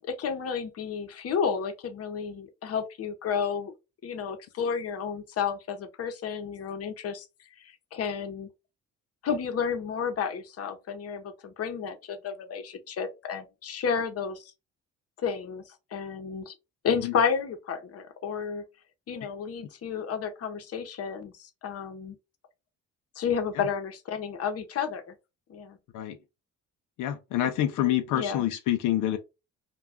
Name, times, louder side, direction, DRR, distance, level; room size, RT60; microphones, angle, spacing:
voice 1, 0.0-3.7 4.0-7.3 7.6-8.5 9.2-14.5 15.2-16.5 16.8-18.6 19.1-22.2 23.2-25.1 25.5-25.8 27.4-27.5 27.8-28.4, left 6 dB, 50° left, 0.8 m, -31 dB
voice 2, 27.0-29.2, left 12 dB, 90° left, 0.5 m, -27 dB
2.3 x 2.3 x 3.4 m
cardioid pair, 90°, 30 cm